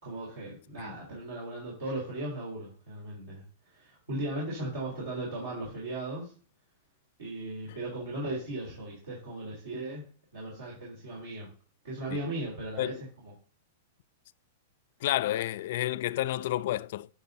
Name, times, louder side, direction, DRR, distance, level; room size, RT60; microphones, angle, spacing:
voice 1, 0.0-3.4 3.7-6.3 7.2-11.5 11.8-13.3, right 1 dB, 80° right, 3.4 m, -37 dB
voice 2, 15.0-17.1, left 14 dB, 60° left, 0.3 m, -30 dB
9.3 x 5.2 x 2.7 m
hypercardioid pair, 115°, 0 cm